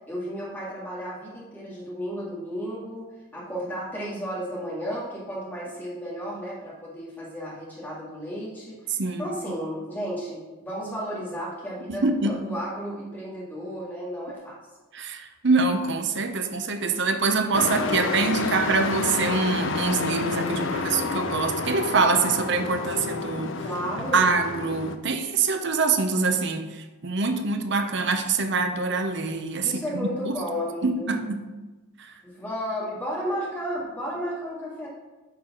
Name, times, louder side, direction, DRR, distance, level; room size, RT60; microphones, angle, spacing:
voice 1, 0.1-3.1 3.3-14.6 17.6-18.5 23.6-24.3 29.6-31.2 32.2-34.9, equal, 10° left, -6 dB, 2.0 m, -33 dB
voice 2, 11.9-12.4 14.9-23.5 24.1-26.7 27.0-29.7 30.3-30.4 30.8-31.5, right 4 dB, 60° right, 7 dB, 0.8 m, -24 dB
Truck, 17.5-25.0, left 4 dB, 70° left, 0.7 m, -29 dB
8.7 x 4.8 x 6.0 m, 1.2 s
head